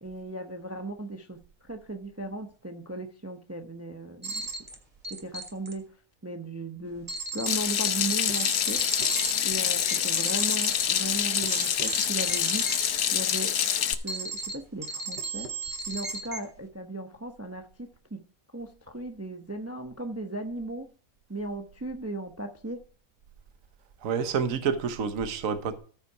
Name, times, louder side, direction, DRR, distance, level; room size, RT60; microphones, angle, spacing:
voice 1, 0.0-1.4 1.7-4.4 5.1-6.0 6.2-7.1 7.3-8.9 9.4-12.8 13.1-13.5 14.0-15.5 15.9-18.2 18.5-20.9 21.3-22.8, right 2 dB, 15° right, 0.6 m, -36 dB
sound 1, 4.2-4.7 5.0-5.7 7.1-7.5 7.8-12.8 13.3-13.7 14.1-14.5 14.8-16.4, right 3 dB, 35° right, 2.0 m, -35 dB
Water tap faucet / Sink (filling or washing), 7.5-13.9, left 9 dB, 80° left, 1.3 m, -26 dB
voice 2, 24.0-25.8, right 6 dB, 70° right, 1.3 m, -28 dB
14.0 x 5.7 x 4.6 m
omnidirectional pair, 1.5 m